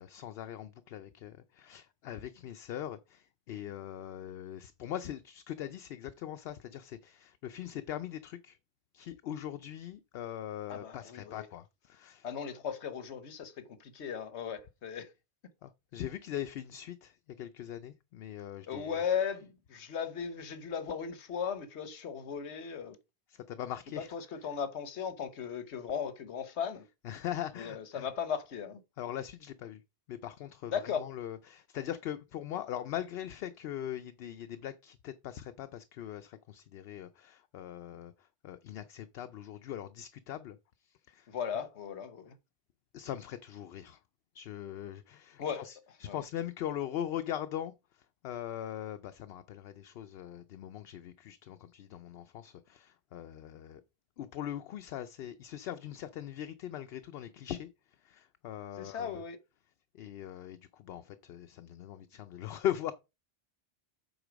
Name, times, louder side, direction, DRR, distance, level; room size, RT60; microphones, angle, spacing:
voice 1, 0.0-8.6 8.9-12.3 15.6-18.9 23.3-24.1 27.0-28.1 29.0-29.8 30.1-40.6 40.8-41.3 42.9-44.0 44.3-53.8 54.2-59.2 59.9-62.9, left 11 dB, 70° left, 0.8 m, -41 dB
voice 2, 10.7-11.5 12.2-15.1 18.7-23.0 24.1-26.9 27.6-28.8 30.7-31.1 41.3-42.3 45.4-45.6 46.1-46.2 58.8-59.4, left 7 dB, 90° left, 1.2 m, -37 dB
8.0 x 4.0 x 5.0 m
omnidirectional pair, 1.1 m